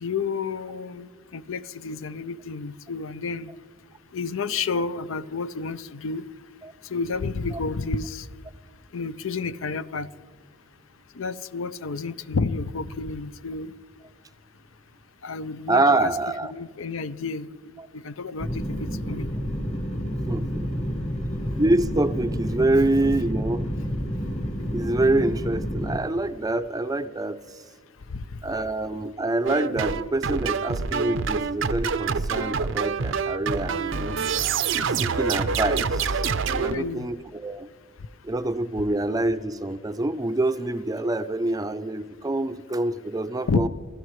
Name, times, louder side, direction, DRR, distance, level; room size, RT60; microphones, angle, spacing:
voice 1, 0.0-3.5 4.1-6.2 6.9-8.3 8.9-10.1 11.2-13.7 15.2-16.1 16.4-17.6 17.9-19.3 28.1-28.2 36.7-37.1 43.5-43.7, left 4 dB, 70° left, 14 dB, 0.6 m, -30 dB
voice 2, 15.7-16.5 17.8-17.9 20.2-20.9 21.5-23.7 24.7-27.4 28.4-34.2 34.7-36.2 36.5-37.7 38.2-43.7, right 2 dB, 20° right, 11 dB, 0.5 m, -26 dB
sound 1, 18.4-26.0, equal, 30° left, 1.3 m, -29 dB
sound 2, 29.5-36.8, right 5 dB, 65° right, 0.6 m, -26 dB
27.0 x 15.5 x 3.2 m, 1.6 s
head